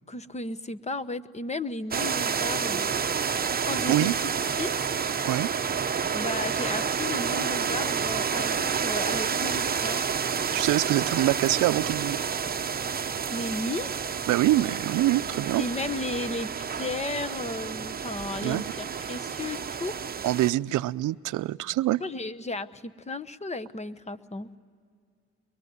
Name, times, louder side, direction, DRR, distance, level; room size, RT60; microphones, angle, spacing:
voice 1, 0.1-3.0 3.6-4.2 4.6-4.9 6.1-10.1 13.3-13.9 14.6-14.7 15.6-20.0 22.0-24.5, left 2 dB, 20° left, 14 dB, 1.0 m, -34 dB
sound 1, 1.9-20.5, right 6 dB, 30° right, 0.9 m, -29 dB
voice 2, 10.5-12.2 14.3-15.6 18.4-18.6 20.2-22.0, right 16 dB, 80° right, 16 dB, 0.6 m, -25 dB
23.0 x 23.0 x 9.6 m, 2.2 s
cardioid pair, 90°, 30 cm